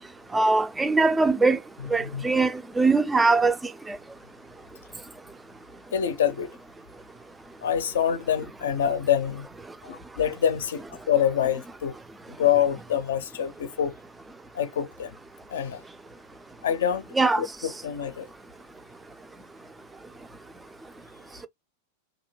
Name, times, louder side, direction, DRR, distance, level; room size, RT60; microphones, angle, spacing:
voice 1, 0.3-1.6 1.9-3.6 3.9-4.0 17.1-17.4, right 3 dB, 10° right, 0.3 m, -21 dB
voice 2, 5.9-6.5 7.6-9.5 9.8-12.0 12.3-14.0 14.5-15.2 15.5-15.8 16.6-17.1 17.4-18.3, left 9 dB, 60° left, 0.5 m, -26 dB
2.7 x 2.1 x 3.0 m
figure-of-eight pair, 90°, 0 cm